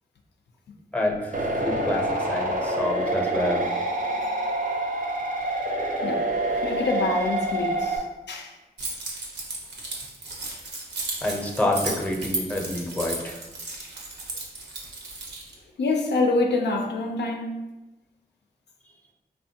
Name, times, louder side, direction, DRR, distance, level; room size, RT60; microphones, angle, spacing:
voice 1, 0.9-3.6 11.2-13.4, left 1 dB, 10° left, 0 dB, 0.6 m, -28 dB
sound 1, 1.3-8.0, right 1 dB, 50° right, 0.5 m, -27 dB
voice 2, 6.6-8.5 15.8-17.5, left 3 dB, 90° left, 1 dB, 0.4 m, -26 dB
Keys jangling, 8.8-15.5, right 2 dB, 90° right, 0.7 m, -34 dB
3.3 x 2.1 x 2.7 m, 1.1 s
wide cardioid pair, 70°, 17 cm